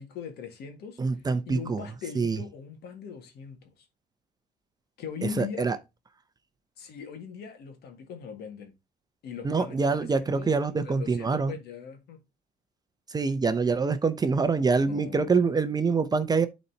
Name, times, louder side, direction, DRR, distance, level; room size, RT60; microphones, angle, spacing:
voice 1, 0.0-1.0 1.5-3.9 5.0-5.7 6.8-8.7 9.2-12.2 14.8-15.4, left 7 dB, 70° left, 1.9 m, -40 dB
voice 2, 1.0-1.8 2.2-2.4 5.4-5.8 9.4-11.5 13.1-16.5, right 4 dB, 25° right, 0.6 m, -25 dB
11.0 x 4.2 x 2.8 m
cardioid pair, 110°, 17 cm